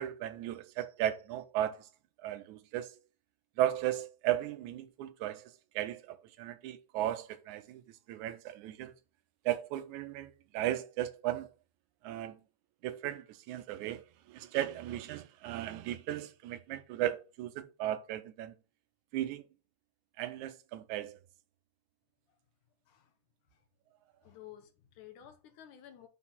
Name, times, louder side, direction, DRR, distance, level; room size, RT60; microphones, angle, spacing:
voice 1, 0.0-1.9 2.2-3.0 3.6-7.8 8.1-8.9 9.5-11.5 12.0-12.4 12.8-18.5 19.1-19.4 20.2-21.2, right 13 dB, 80° right, 1.8 m, -36 dB
voice 2, 24.2-26.1, left 11 dB, 75° left, 2.5 m, -53 dB
6.0 x 4.0 x 5.6 m
omnidirectional pair, 3.7 m